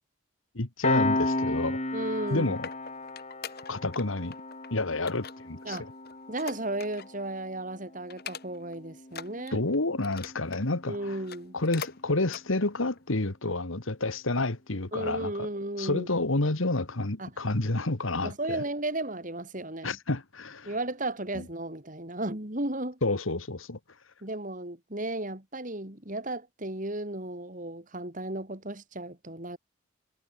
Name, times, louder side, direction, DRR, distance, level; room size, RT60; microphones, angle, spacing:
voice 1, 0.5-1.8 2.3-2.7 3.7-4.3 4.7-5.8 9.5-11.2 11.5-15.5 15.8-18.6 19.8-20.7 21.3-21.4 23.0-23.8, left 2 dB, 75° left, 1.9 m, -29 dB
Piano, 0.8-11.9, left 2 dB, 35° left, 3.6 m, -35 dB
voice 2, 1.9-2.5 5.6-5.9 6.3-9.6 10.9-11.5 14.9-16.1 17.2-17.3 18.2-20.0 20.6-23.0 24.2-29.6, right 2 dB, 40° right, 3.2 m, -34 dB
sound 1, 2.1-4.0 4.3-4.7 5.1-7.2 7.5-7.7 8.1-8.7 9.1-10.7 11.1-12.0 12.3-12.5 13.0-13.1, left 6 dB, 50° left, 2.3 m, -43 dB
head